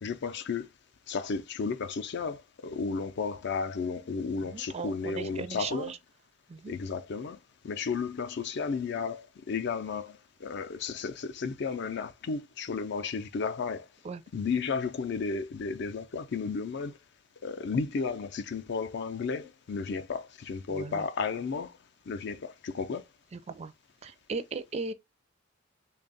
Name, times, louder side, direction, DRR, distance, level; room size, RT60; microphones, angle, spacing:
voice 1, 0.0-0.7 1.1-5.9 6.7-7.4 7.6-13.9 14.3-17.0 17.4-21.8 22.1-23.0, left 5 dB, 60° left, 0.4 m, -33 dB
voice 2, 4.5-6.0 6.5-6.8 14.0-14.2 20.7-21.0 23.5-23.7 24.0-24.9, right 4 dB, 35° right, 0.4 m, -37 dB
3.4 x 2.3 x 3.9 m
head